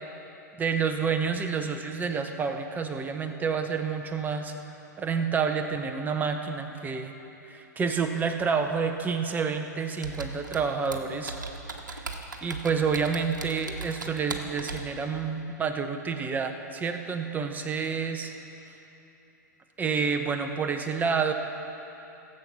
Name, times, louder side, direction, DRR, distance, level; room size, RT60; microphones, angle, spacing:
voice 1, 0.6-4.5 5.0-7.1 7.5-11.3 11.9-12.1 12.4-18.3 19.8-21.3, right 5 dB, 15° right, 6 dB, 0.9 m, -29 dB
Computer keyboard, 10.0-14.9, right 3 dB, 80° right, 1.1 m, -38 dB
16.5 x 7.8 x 5.6 m, 3.0 s
figure-of-eight pair, 100°, 10 cm